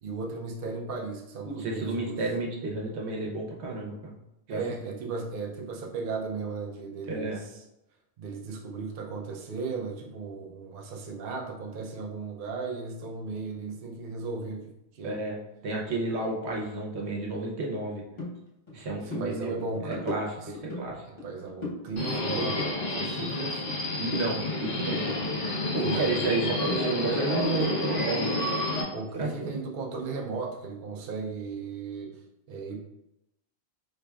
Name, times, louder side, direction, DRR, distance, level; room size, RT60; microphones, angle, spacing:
voice 1, 0.0-2.2 4.5-7.6 8.2-15.2 19.0-20.1 20.4-20.5 21.2-23.6 25.8-26.6 28.9-32.8, right 4 dB, 60° right, 1 dB, 0.7 m, -36 dB
voice 2, 1.5-4.1 4.5-4.6 7.1-7.4 15.0-15.4 15.6-18.0 18.7-19.6 19.8-21.0 24.0-25.1 25.7-28.3 29.1-29.6, right 2 dB, 85° right, -1 dB, 1.1 m, -31 dB
sound 1, 18.2-18.3 18.7-18.8 19.1-19.3 19.6-20.8 21.2-21.8 22.1-23.8 24.1-25.9 26.2-28.1, left 2 dB, 30° left, 1.0 m, -37 dB
Subway metro underground, 22.0-28.8, left 1 dB, 55° left, 1.1 m, -30 dB
4.5 x 3.4 x 2.3 m, 0.89 s
omnidirectional pair, 1.1 m